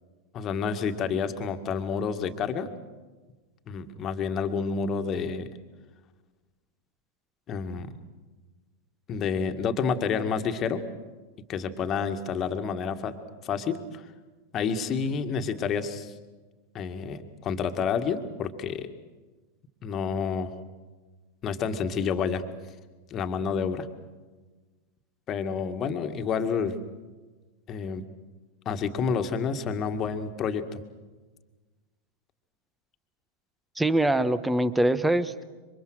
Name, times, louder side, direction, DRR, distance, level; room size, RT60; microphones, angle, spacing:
voice 1, 0.3-2.7 3.7-5.5 7.5-7.9 9.1-10.8 11.5-13.2 13.4-14.0 14.5-16.1 16.7-18.9 19.8-20.5 21.4-22.4 23.1-23.9 25.3-26.7 27.7-28.0 28.7-30.8, left 6 dB, 30° left, 8 dB, 1.9 m, -29 dB
voice 2, 33.8-35.4, right 1 dB, 5° right, 15 dB, 1.2 m, -23 dB
28.0 x 25.0 x 6.3 m, 1.3 s
figure-of-eight pair, 90°, 0 cm